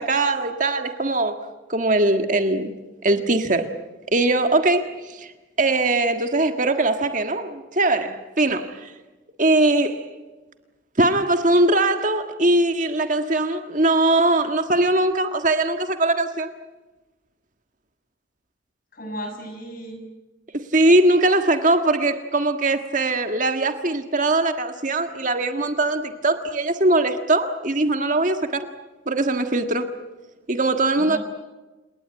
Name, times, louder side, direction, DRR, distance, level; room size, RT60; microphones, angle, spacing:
voice 1, 0.0-1.4 1.7-2.7 3.0-3.7 4.1-5.3 5.6-8.9 9.4-10.0 11.0-16.5 20.5-28.7 29.1-30.0 30.5-31.2, right 2 dB, 40° right, 1.6 m, -21 dB
voice 2, 18.9-20.1 31.0-31.2, equal, 45° left, 6.6 m, -35 dB
29.5 x 19.0 x 8.9 m
head